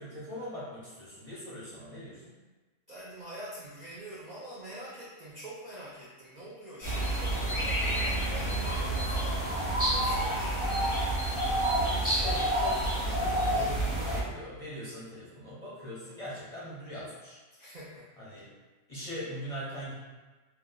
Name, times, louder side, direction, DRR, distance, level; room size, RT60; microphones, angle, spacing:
voice 1, 0.0-2.3 12.2-17.4 18.2-18.5 18.9-19.9, equal, 35° left, -9 dB, 0.6 m, -41 dB
voice 2, 2.9-11.2 11.7-12.5 13.1-13.3 17.6-18.1, right 1 dB, 65° right, -7 dB, 0.4 m, -45 dB
sound 1, 6.8-14.2, right 1 dB, 10° right, 0.8 m, -28 dB
2.8 x 2.3 x 3.7 m, 1.3 s
omnidirectional pair, 1.5 m